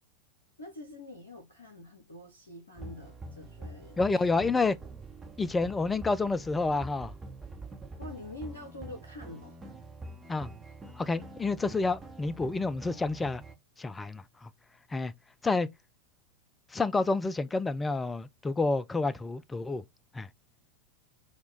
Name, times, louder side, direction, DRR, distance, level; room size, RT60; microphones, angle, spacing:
voice 1, 0.6-4.5 8.0-9.7, left 1 dB, 75° left, 0.8 m, -46 dB
sound 1, 2.8-13.5, right 2 dB, 10° right, 0.9 m, -46 dB
voice 2, 4.0-4.8 5.4-7.1 10.3-10.5 11.0-13.4 13.8-14.5 14.9-15.1 15.4-15.7 16.7-19.8 20.1-20.3, left 3 dB, 10° left, 0.3 m, -29 dB
4.2 x 2.3 x 4.4 m
figure-of-eight pair, 90°, 0 cm